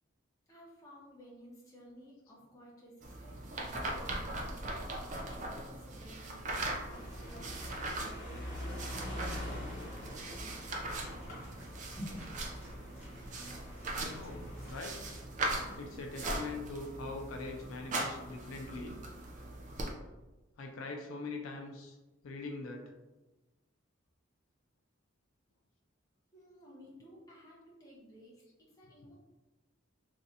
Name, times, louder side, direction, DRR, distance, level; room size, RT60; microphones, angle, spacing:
voice 1, 0.5-10.9 26.3-29.2, equal, 15° left, -5 dB, 0.7 m, -56 dB
sound 1, 3.0-19.9, right 1 dB, 35° right, 0.4 m, -40 dB
sound 2, 6.9-14.7, left 1 dB, 35° left, 1.1 m, -45 dB
sound 3, 10.5-16.9, equal, 5° right, 1.1 m, -52 dB
voice 2, 13.9-15.0 15.8-19.0 20.6-22.0 22.2-22.9, left 3 dB, 85° left, 2 dB, 0.4 m, -43 dB
3.1 x 2.6 x 2.7 m, 1.1 s
head